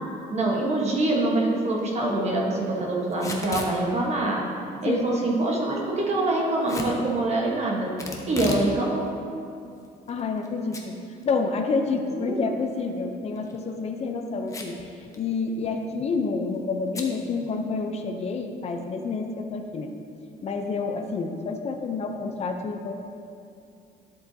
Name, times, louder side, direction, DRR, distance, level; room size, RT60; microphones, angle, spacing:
voice 1, 0.3-4.4 4.8-7.9 8.3-9.0 12.2-12.5, right 2 dB, 40° right, -3 dB, 1.3 m, -25 dB
Packing tape duct tape / Tearing, 3.1-3.7 6.7-6.9 8.0-8.7 9.1-9.2 9.8-10.5 10.7-10.8 11.2-11.3 13.3-13.6 14.5-14.8 15.1-15.2 15.5-15.8 16.9-17.1, left 2 dB, 20° left, 1.0 m, -34 dB
voice 2, 4.9-5.2 10.1-11.0 11.2-14.8 15.2-19.9 20.4-22.9, left 4 dB, 40° left, 4 dB, 0.7 m, -28 dB
10.5 x 7.7 x 2.8 m, 2.5 s
cardioid pair, 110°, 17 cm